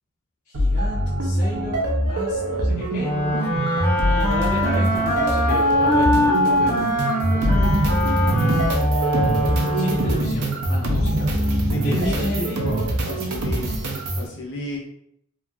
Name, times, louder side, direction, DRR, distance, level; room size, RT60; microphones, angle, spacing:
voice 1, 0.5-1.8 2.1-3.1 4.0-6.9 9.7-11.5 11.8-12.8, equal, 35° left, -6 dB, 0.4 m, -32 dB
sound 1, 0.5-14.3, right 1 dB, 85° right, 0.6 m, -23 dB
sound 2, 3.0-10.4, left 1 dB, 10° left, 0.8 m, -22 dB
voice 2, 7.1-7.8 9.4-9.9 11.6-14.8, left 1 dB, 55° left, -2 dB, 0.8 m, -33 dB
2.8 x 2.6 x 2.3 m, 0.72 s
head